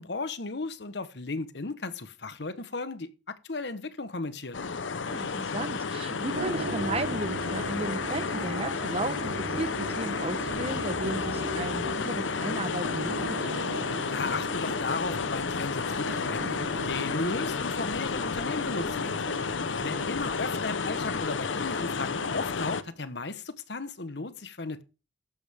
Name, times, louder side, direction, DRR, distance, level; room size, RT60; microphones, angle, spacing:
voice 1, 0.0-4.6 14.1-19.2 19.8-24.8, left 3 dB, 65° left, 1.1 m, -35 dB
sound 1, 4.5-22.8, left 5 dB, 90° left, 0.8 m, -31 dB
voice 2, 5.0-13.4 19.8-20.1, right 2 dB, 35° right, 0.9 m, -35 dB
sound 2, 6.3-23.1, right 1 dB, 80° right, 3.2 m, -39 dB
13.5 x 10.0 x 3.5 m
head